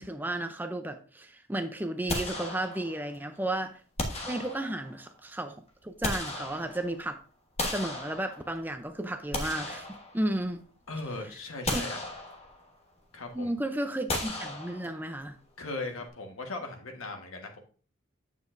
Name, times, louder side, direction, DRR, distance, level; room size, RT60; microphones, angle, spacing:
voice 1, 0.0-3.8 4.2-5.6 5.8-7.2 7.7-9.9 10.1-10.6 11.7-11.8 13.3-15.4, right 1 dB, 10° right, 0.5 m, -33 dB
sound 1, 2.1-3.1 4.0-5.0 5.7-7.0 7.6-8.7 9.1-10.6 11.0-11.1 11.7-12.7 14.1-15.2, left 2 dB, 30° left, 1.2 m, -35 dB
voice 2, 10.9-12.0 13.1-13.5 15.6-17.6, left 2 dB, 80° left, 1.4 m, -38 dB
8.5 x 7.1 x 2.6 m
head